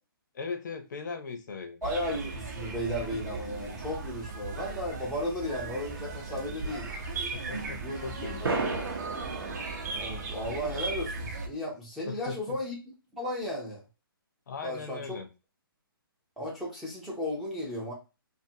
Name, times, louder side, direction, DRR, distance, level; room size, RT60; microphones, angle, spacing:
voice 1, 0.3-1.8 7.3-8.9 12.1-12.6 14.5-15.3, left 5 dB, 50° left, 6 dB, 0.6 m, -39 dB
voice 2, 1.8-6.9 7.8-8.6 9.9-12.7 13.2-13.8 14.6-15.2 16.4-17.9, left 1 dB, 5° right, -6 dB, 0.5 m, -35 dB
sound 1, 1.8-11.5, right 3 dB, 45° right, 0.7 m, -37 dB
sound 2, 6.6-7.4 7.7-7.8 8.4-11.5, right 4 dB, 75° right, 0.8 m, -36 dB
2.5 x 2.5 x 2.6 m, 0.28 s
hypercardioid pair, 160°, 12 cm